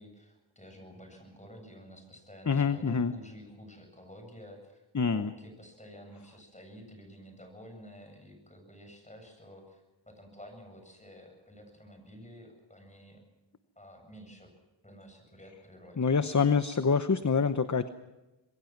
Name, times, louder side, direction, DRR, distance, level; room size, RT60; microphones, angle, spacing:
voice 1, 0.0-13.2 13.8-14.5 14.8-16.2, equal, 15° left, 4 dB, 7.8 m, -51 dB
voice 2, 2.5-3.1 4.9-5.3 16.0-17.9, left 5 dB, 40° left, 11 dB, 0.9 m, -26 dB
26.5 x 21.5 x 6.1 m, 1.0 s
wide cardioid pair, 70°, 46 cm